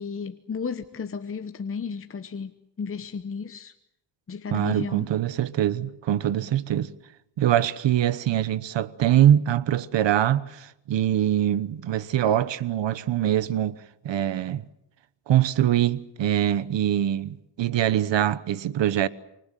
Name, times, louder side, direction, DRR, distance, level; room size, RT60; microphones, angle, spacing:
voice 1, 0.0-2.5 2.8-3.7 4.3-5.1, left 5 dB, 30° left, 1.0 m, -33 dB
voice 2, 4.5-6.9 7.4-13.8 14.0-14.6 15.3-19.1, right 11 dB, 90° right, 1.1 m, -23 dB
26.5 x 24.5 x 7.6 m
wide cardioid pair, 140°, 43 cm